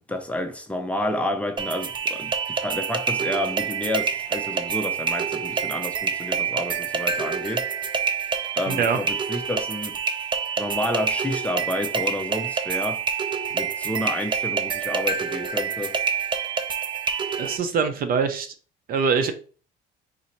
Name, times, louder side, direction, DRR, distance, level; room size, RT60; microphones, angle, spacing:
voice 1, 0.0-7.7 8.6-10.0 10.6-13.0 13.5-15.9, left 1 dB, 5° left, 0.8 m, -30 dB
sound 1, 1.6-17.6, right 6 dB, 30° right, 0.6 m, -27 dB
voice 2, 8.7-9.0 17.4-18.5 18.9-19.3, right 5 dB, 60° right, 0.8 m, -23 dB
4.1 x 2.7 x 4.4 m
cardioid pair, 110°, 17 cm